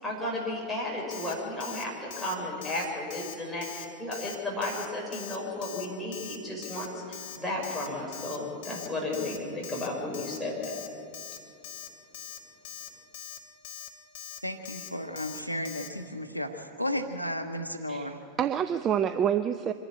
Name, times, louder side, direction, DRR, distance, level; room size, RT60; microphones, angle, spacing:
voice 1, 0.0-10.8, left 1 dB, 5° left, -4 dB, 6.0 m, -34 dB
Alarm, 1.1-1.3 1.6-1.8 2.1-2.3 2.6-2.9 3.1-3.3 3.6-3.8 4.1-4.4 4.6-4.9 5.1-5.4 5.6-5.9 6.1-6.4 6.6-6.9 7.1-7.4 7.6-7.9 8.1-8.4 8.6-8.9 9.1-9.4 9.6-9.9 10.1-10.4 10.6-10.9 11.1-11.4 11.6-11.9 12.1-12.4 12.6-12.9 13.1-13.4 13.6-13.9 14.1-14.4 14.7-14.9 15.2-15.4 15.6-15.9, left 10 dB, 50° left, 1.1 m, -42 dB
voice 2, 14.4-18.2, left 1 dB, 90° right, 7 dB, 1.1 m, -34 dB
voice 3, 17.9-19.7, right 9 dB, 30° right, 12 dB, 0.5 m, -28 dB
25.0 x 11.5 x 10.0 m, 2.6 s
figure-of-eight pair, 90°, 0 cm